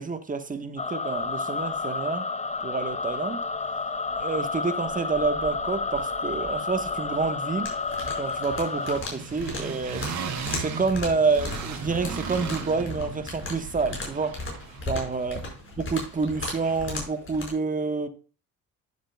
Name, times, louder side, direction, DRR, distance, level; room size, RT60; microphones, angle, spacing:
voice 1, 0.0-2.3 2.6-3.4 4.2-7.7 8.2-10.1 10.6-14.4 14.9-15.4 15.8-18.1, right 4 dB, 25° right, 1.3 m, -28 dB
sound 1, 0.8-9.0, left 4 dB, 25° left, 1.0 m, -30 dB
sound 2, 3.1-3.2 3.4-4.6 4.8-17.0, right 6 dB, 65° right, 2.9 m, -39 dB
sound 3, 7.6-17.5, left 2 dB, 45° left, 5.1 m, -37 dB
11.5 x 7.4 x 2.3 m
cardioid pair, 90°, 30 cm